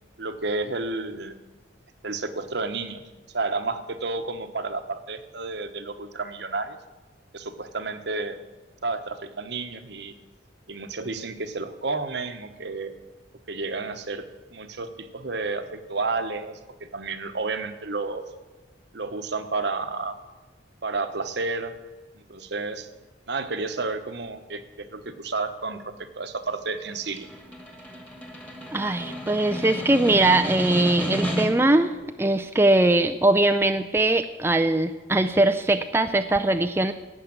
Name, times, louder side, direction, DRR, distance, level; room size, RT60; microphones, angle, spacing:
voice 1, 0.2-1.4 2.0-3.0 3.3-6.8 7.3-8.4 8.8-10.1 10.7-12.9 13.5-18.2 18.9-20.2 20.8-21.7 22.1-22.9 23.3-27.3, right 3 dB, 65° right, 9 dB, 1.1 m, -31 dB
Snare drum, 26.9-31.8, equal, 10° left, 1.9 m, -32 dB
voice 2, 28.7-36.9, right 2 dB, 15° right, 6 dB, 0.5 m, -21 dB
17.0 x 6.6 x 8.8 m, 1.2 s
head